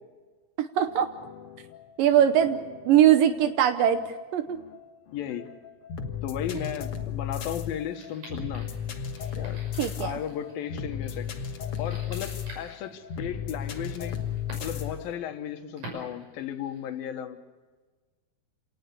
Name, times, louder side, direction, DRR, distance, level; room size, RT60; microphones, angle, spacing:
voice 1, 0.6-1.1 2.0-2.6 2.9-4.6 9.8-10.2, right 10 dB, 75° right, 9 dB, 2.4 m, -21 dB
sound 1, 0.9-15.1, left 8 dB, 55° left, 1.8 m, -36 dB
voice 2, 5.1-5.5 6.2-8.7 9.4-9.6 10.0-11.3 11.8-14.2 14.6-17.4, left 9 dB, 75° left, 8 dB, 3.0 m, -35 dB
sound 2, 7.9-17.0, right 2 dB, 55° right, 7.5 m, -48 dB
27.5 x 18.5 x 6.9 m, 1.3 s
omnidirectional pair, 4.3 m